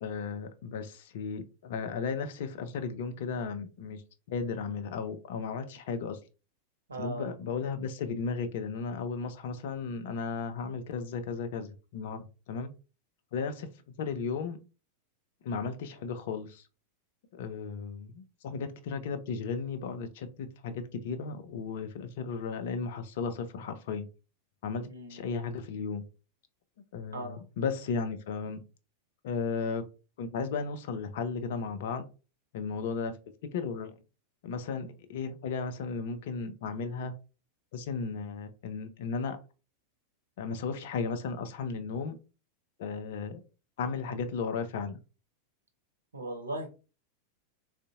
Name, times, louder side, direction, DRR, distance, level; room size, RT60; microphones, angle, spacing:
voice 1, 0.0-4.0 4.3-6.2 7.0-12.7 13.3-13.7 14.0-14.6 15.4-16.7 17.3-24.1 24.6-26.0 26.9-28.6 29.2-29.8 30.2-32.0 32.5-33.1 33.4-33.9 34.4-37.1 37.7-39.4 40.4-42.2 42.8-43.4 43.8-45.0, left 5 dB, 55° left, 0.5 m, -35 dB
voice 2, 6.9-7.3 24.8-25.4 27.1-27.4 46.1-46.7, right 1 dB, 75° right, 0.8 m, -38 dB
3.8 x 2.5 x 2.3 m
figure-of-eight pair, 90°, 0 cm